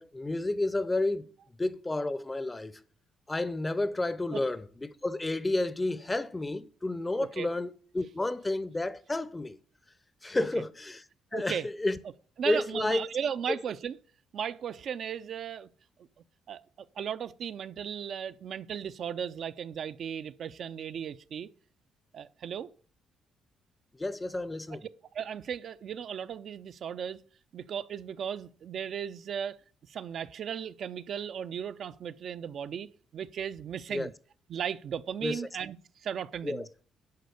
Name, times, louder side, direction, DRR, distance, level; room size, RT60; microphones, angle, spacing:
voice 1, 0.0-1.3 1.6-2.8 3.3-9.6 10.2-11.0 11.3-12.0 12.5-13.0 13.5-13.6 24.0-24.8 33.9-34.1 35.2-35.4 36.4-36.7, left 2 dB, 15° left, 0.6 m, -31 dB
voice 2, 11.3-11.7 12.4-14.0 14.3-15.7 16.5-16.6 17.0-21.5 22.1-22.7 24.7-24.8 25.1-27.2 27.5-29.6 29.9-34.1 34.5-35.8 36.0-36.6, right 8 dB, 60° right, 0.5 m, -36 dB
10.5 x 4.2 x 6.8 m
cardioid pair, 100°, 0 cm